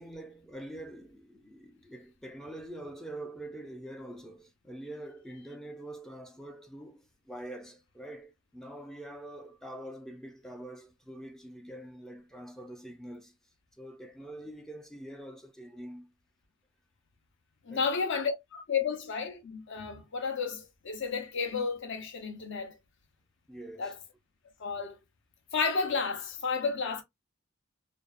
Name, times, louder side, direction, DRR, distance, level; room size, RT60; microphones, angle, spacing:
voice 1, 0.0-13.4 13.8-16.1 17.7-17.8 23.5-24.0, right 1 dB, ahead, 0.3 m, -45 dB
voice 2, 17.6-22.8 23.8-24.0 24.6-25.0 25.5-27.0, left 5 dB, 60° left, 0.7 m, -32 dB
2.6 x 2.1 x 2.3 m
head